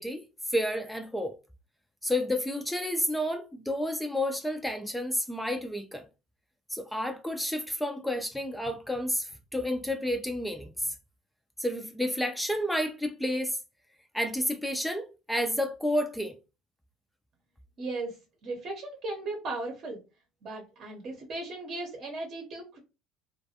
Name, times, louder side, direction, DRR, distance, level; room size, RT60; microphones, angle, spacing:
voice 1, 0.0-1.3 2.0-6.0 6.7-10.9 11.6-13.6 14.1-16.4, left 1 dB, 5° left, 0.3 m, -30 dB
voice 2, 17.8-18.2 18.4-20.0 20.4-22.8, right 2 dB, 50° right, 0.7 m, -36 dB
2.3 x 2.2 x 2.7 m
hypercardioid pair, 80°, 0 cm